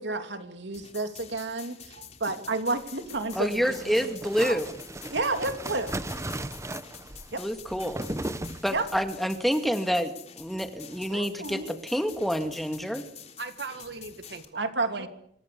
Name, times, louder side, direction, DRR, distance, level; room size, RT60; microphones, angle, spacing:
voice 1, 0.0-1.9 2.2-4.6 5.1-5.9 7.3-7.4 8.7-8.9 11.1-11.8 14.6-15.1, right 3 dB, 80° right, 7 dB, 2.9 m, -31 dB
sound 1, 0.7-14.4, left 8 dB, 40° left, 3.5 m, -48 dB
voice 2, 1.9-2.4 13.4-15.1, right 4 dB, 65° right, 9 dB, 1.9 m, -40 dB
sound 2, 3.0-9.1, right 1 dB, 15° right, 1.0 m, -37 dB
voice 3, 3.4-4.7 7.4-8.0 8.6-13.0, equal, ahead, 6 dB, 2.1 m, -28 dB
27.0 x 24.0 x 6.9 m, 0.73 s
head